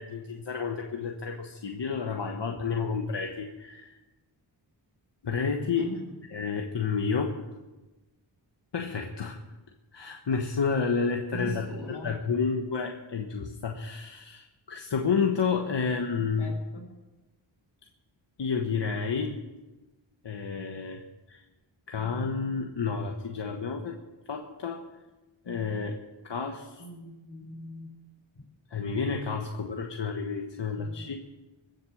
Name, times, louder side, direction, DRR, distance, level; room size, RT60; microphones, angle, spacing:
voice 1, 0.0-4.0 5.2-5.9 6.3-7.3 8.7-9.4 9.9-11.6 12.0-16.5 18.4-19.4 20.2-21.4 21.9-24.0 24.3-24.8 25.4-26.0 26.2-26.8 28.7-31.2, left 5 dB, 60° left, 2 dB, 1.4 m, -30 dB
voice 2, 5.7-6.2 11.3-12.2 16.1-16.9 26.8-28.0 30.7-31.2, right 1 dB, 80° left, 2 dB, 3.9 m, -42 dB
21.5 x 8.0 x 6.5 m, 1.1 s
wide cardioid pair, 75°, 47 cm